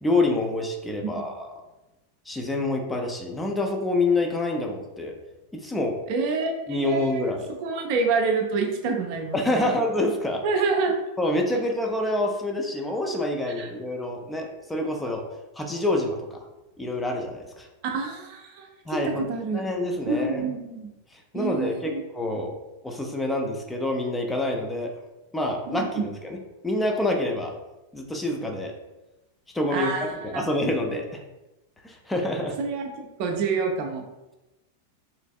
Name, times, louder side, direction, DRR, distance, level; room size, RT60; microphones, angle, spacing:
voice 1, 0.0-1.5 2.3-5.1 5.6-6.0 6.7-7.5 9.3-10.4 11.2-15.2 15.6-16.4 16.8-17.7 18.9-19.2 19.5-20.4 21.3-22.5 22.8-24.9 25.3-26.4 26.6-27.5 27.9-28.7 29.5-31.2 31.8-32.5, left 2 dB, 10° left, 1 dB, 0.5 m, -27 dB
voice 2, 6.1-7.2 7.6-9.7 10.4-11.0 11.5-11.6 13.6-13.7 17.8-19.6 20.1-20.9 21.3-22.0 25.7-26.0 29.7-30.4 32.6-34.0, right 4 dB, 45° right, 2 dB, 0.5 m, -27 dB
3.3 x 3.1 x 2.3 m, 1.0 s
figure-of-eight pair, 90°, 0 cm